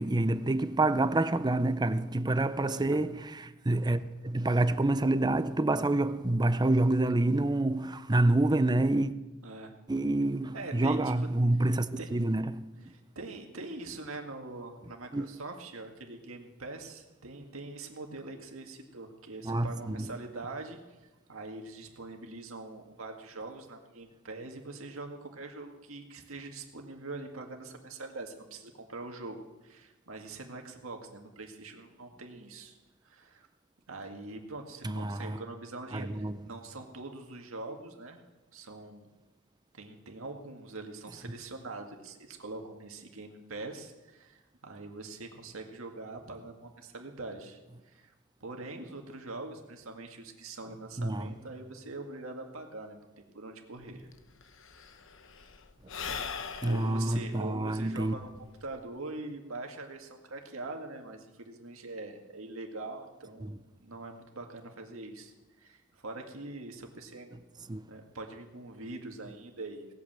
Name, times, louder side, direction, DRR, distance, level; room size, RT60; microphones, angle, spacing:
voice 1, 0.0-9.1 9.9-12.6 15.1-15.2 19.4-20.1 34.8-35.4 35.9-36.4 51.0-51.3 56.6-58.2 63.4-63.6 67.7-67.8, right 2 dB, 20° right, 0.6 m, -27 dB
voice 2, 9.4-9.7 10.5-11.3 12.0-12.1 12.9-32.8 33.0-33.5 33.9-38.2 38.5-39.1 39.7-48.1 48.4-54.1 55.4-55.5 56.6-58.3 58.6-63.5 63.8-67.3 67.9-69.9, right 2 dB, 75° right, 2.0 m, -43 dB
Sigh / Breathing, 53.8-53.9 54.1-58.8, left 6 dB, 65° left, 0.9 m, -41 dB
18.0 x 8.5 x 7.6 m
head